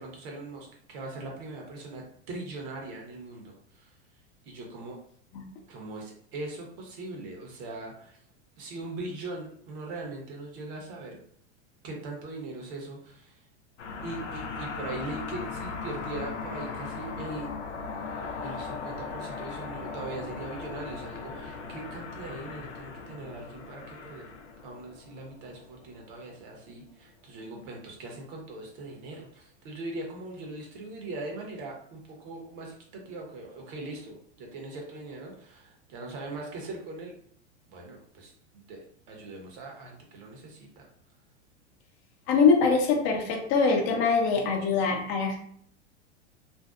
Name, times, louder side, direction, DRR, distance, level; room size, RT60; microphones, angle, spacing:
voice 1, 0.0-3.9 4.4-5.0 5.7-8.2 8.6-11.2 11.8-13.4 14.0-17.5 18.4-24.3 24.6-37.1 37.7-40.9, right 2 dB, 50° right, 0 dB, 0.8 m, -40 dB
sound 1, 13.8-26.5, left 4 dB, 85° left, 0.5 m, -38 dB
voice 2, 42.3-45.4, left 4 dB, 45° left, 2 dB, 0.6 m, -23 dB
2.6 x 2.0 x 2.3 m, 0.63 s
hypercardioid pair, 100°, 35 cm